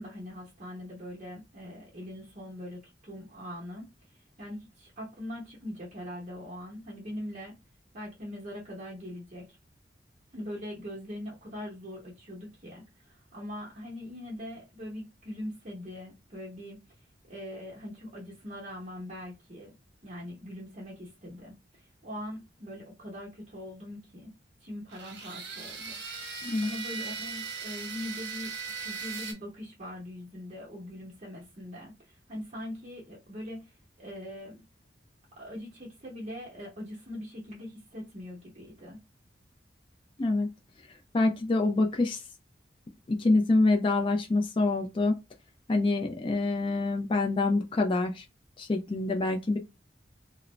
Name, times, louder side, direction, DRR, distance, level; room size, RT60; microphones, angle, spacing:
voice 1, 0.0-7.6 7.9-9.6 10.3-19.7 20.0-24.3 24.6-26.0 26.3-34.6 35.4-39.0, left 1 dB, 40° right, 0.8 m, -42 dB
sound 1, 24.9-29.3, right 5 dB, 75° right, 0.8 m, -38 dB
voice 2, 41.1-42.2 43.1-45.2 45.7-48.2 48.6-49.6, left 2 dB, 30° left, 0.4 m, -26 dB
2.5 x 2.0 x 3.1 m
head